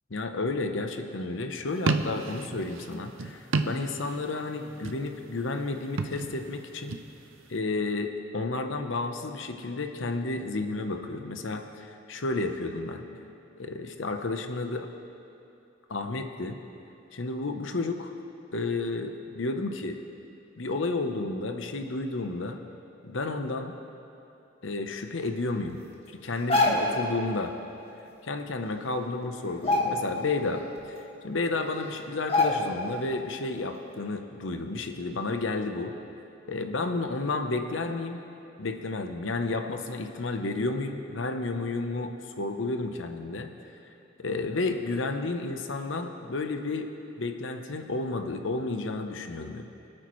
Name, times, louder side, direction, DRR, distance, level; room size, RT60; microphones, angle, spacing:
voice 1, 0.1-6.9 7.5-13.0 13.6-14.9 15.9-16.6 17.1-18.1 18.5-20.0 20.6-22.6 23.0-23.7 24.6-25.8 26.1-27.6 28.2-36.0 36.5-38.2 38.6-42.1 42.4-43.5 44.2-46.9 47.2-49.7, left 3 dB, 70° left, 6 dB, 0.8 m, -31 dB
sound 1, 1.7-4.4 4.7-5.3 5.8-7.1, right 3 dB, 85° right, 0.6 m, -30 dB
sound 2, 26.3-27.1 28.5-28.6 28.9-29.2 29.5-30.4 30.8-30.9 31.6-31.7 32.3-32.9 33.3-33.4, left 2 dB, 30° left, 1.7 m, -26 dB
25.5 x 8.8 x 3.2 m, 2.8 s
head